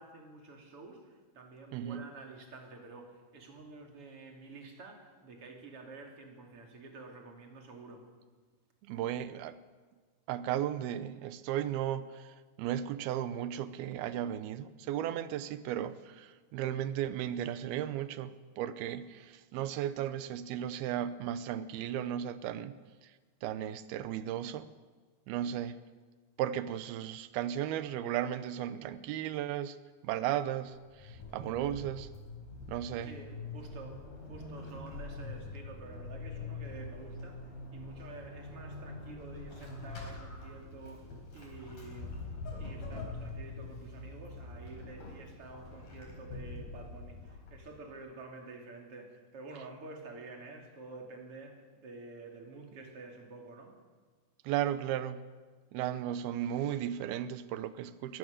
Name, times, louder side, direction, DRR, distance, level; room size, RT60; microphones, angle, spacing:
voice 1, 0.0-8.1 33.0-34.0 34.3-42.2 42.6-53.8, right 3 dB, 40° right, 2 dB, 3.4 m, -49 dB
voice 2, 1.7-2.1 8.8-9.6 10.3-22.7 23.0-23.1 23.4-24.7 25.3-25.8 26.4-29.8 30.0-32.1 32.7-33.2 54.4-55.2 55.7-58.2, right 11 dB, 80° right, 13 dB, 2.6 m, -35 dB
Vehicle / Accelerating revving vroom / Squeak, 30.7-47.9, left 3 dB, 65° left, 6.3 m, -44 dB
22.0 x 18.0 x 6.7 m, 1.5 s
omnidirectional pair, 4.6 m